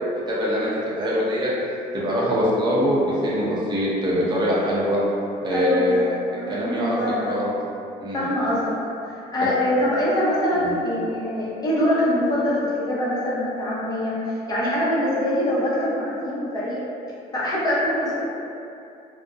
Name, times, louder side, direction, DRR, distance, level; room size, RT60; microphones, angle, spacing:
voice 1, 0.0-1.5 1.9-5.0 5.4-6.1 6.5-7.0 7.2-7.5 8.0-8.3 9.4-9.5 10.5-10.7, equal, 25° right, -7 dB, 0.6 m, -23 dB
voice 2, 5.5-5.9 6.3-7.2 8.1-8.8 9.1-16.8 17.3-18.2, left 1 dB, 20° left, -8 dB, 0.7 m, -24 dB
2.4 x 2.1 x 2.5 m, 2.7 s
cardioid pair, 110°, 17 cm